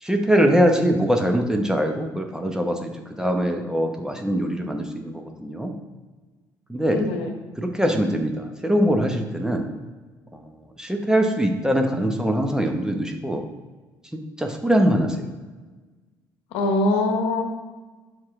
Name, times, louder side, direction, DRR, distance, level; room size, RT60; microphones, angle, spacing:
voice 1, 0.0-5.7 6.7-7.0 7.6-9.7 10.3-10.5 10.8-13.4 14.1-15.2, equal, 5° right, 3 dB, 1.0 m, -22 dB
voice 2, 6.9-7.3 16.5-17.4, left 2 dB, 65° left, 3 dB, 1.1 m, -22 dB
6.2 x 4.5 x 3.7 m, 1.3 s
figure-of-eight pair, 50°, 11 cm